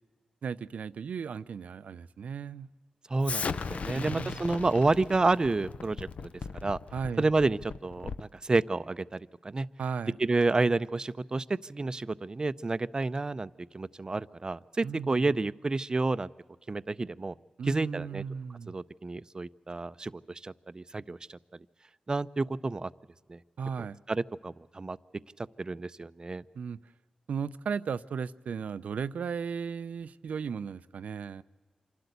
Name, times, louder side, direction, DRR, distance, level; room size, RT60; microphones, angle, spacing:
voice 1, 0.4-2.7 3.9-4.4 6.9-7.3 9.8-10.1 14.8-15.3 17.6-18.7 23.6-24.0 26.5-26.8 27.3-31.4, right 6 dB, 85° right, 0.5 m, -35 dB
voice 2, 3.1-6.3 6.6-6.8 7.2-9.7 10.2-16.3 16.7-17.4 17.6-18.2 18.7-21.4 22.1-22.9 23.3-23.4 24.1-25.0 25.4-26.4, right 3 dB, 35° right, 0.5 m, -30 dB
Explosion, 3.2-8.4, left 5 dB, 70° left, 0.6 m, -37 dB
27.0 x 12.0 x 8.1 m
wide cardioid pair, 75°, 2 cm